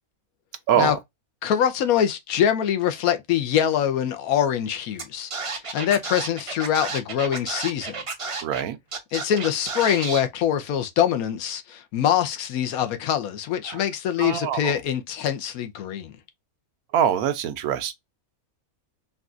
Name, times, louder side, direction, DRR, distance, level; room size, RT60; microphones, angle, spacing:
voice 1, 0.7-1.0 8.4-8.8 13.7-13.8 14.2-14.7 16.9-17.9, right 9 dB, 80° right, 1.1 m, -23 dB
voice 2, 1.4-8.0 9.1-16.2, left 9 dB, 80° left, 1.1 m, -24 dB
Scratching (performance technique), 5.0-5.1 5.3-8.6 8.9-10.2, right 4 dB, 45° right, 0.4 m, -31 dB
4.0 x 2.3 x 2.4 m
omnidirectional pair, 1.5 m